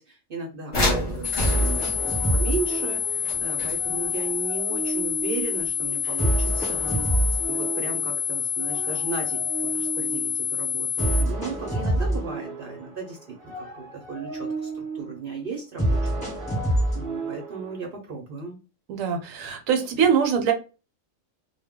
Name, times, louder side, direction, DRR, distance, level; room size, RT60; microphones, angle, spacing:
voice 1, 0.0-1.9 2.3-7.1 7.5-13.2 13.5-16.6 16.9-18.6, right 4 dB, 55° right, 0 dB, 0.7 m, -35 dB
sound 1, 0.7-4.1 6.0-6.1 6.5-6.6, left 1 dB, 35° left, 0.9 m, -29 dB
sound 2, 0.7-0.8 1.4-3.4 3.8-5.6 6.2-8.2 8.6-10.4 11.0-13.1 13.4-15.2 15.8-17.8, right 1 dB, 5° left, 0.9 m, -28 dB
sound 3, 1.2-11.2, left 8 dB, 80° left, 0.3 m, -28 dB
voice 2, 18.9-20.5, right 7 dB, 75° right, 5 dB, 1.0 m, -23 dB
2.2 x 2.1 x 3.5 m, 0.32 s
omnidirectional pair, 1.5 m